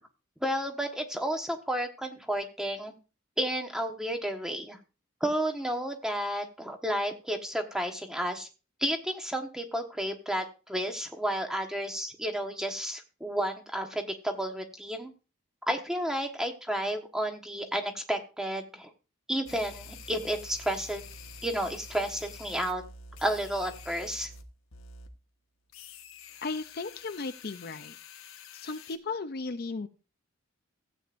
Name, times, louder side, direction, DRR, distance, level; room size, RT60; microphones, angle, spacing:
voice 1, 0.4-2.9 3.4-4.8 5.2-8.5 8.8-15.1 15.7-18.9 19.3-21.0 21.4-22.8 23.2-24.3, right 1 dB, 5° right, 4 dB, 1.2 m, -32 dB
sound 1, 19.5-24.4 24.7-25.1 25.7-29.0, left 4 dB, 80° left, 1.2 m, -47 dB
voice 2, 26.4-28.0 28.5-29.9, left 3 dB, 45° left, 9 dB, 0.5 m, -35 dB
15.5 x 8.6 x 2.6 m, 0.32 s
head